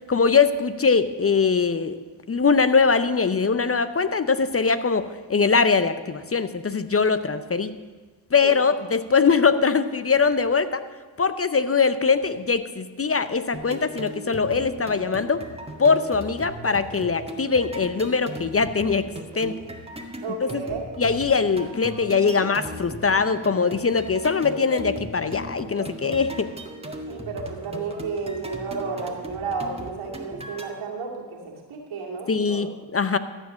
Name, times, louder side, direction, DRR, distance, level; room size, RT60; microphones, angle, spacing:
voice 1, 0.1-2.0 2.3-7.7 8.3-10.8 11.2-15.4 15.8-19.1 19.4-19.6 20.4-20.6 21.0-26.5 32.3-33.2, left 5 dB, 30° left, 12 dB, 0.6 m, -22 dB
sound 1, 13.5-30.7, right 1 dB, 10° right, 1.6 m, -38 dB
voice 2, 20.2-20.8 27.1-31.4 31.7-32.7, right 4 dB, 80° right, -1 dB, 2.3 m, -32 dB
14.0 x 5.0 x 7.5 m, 1.4 s
supercardioid pair, 50°, 49 cm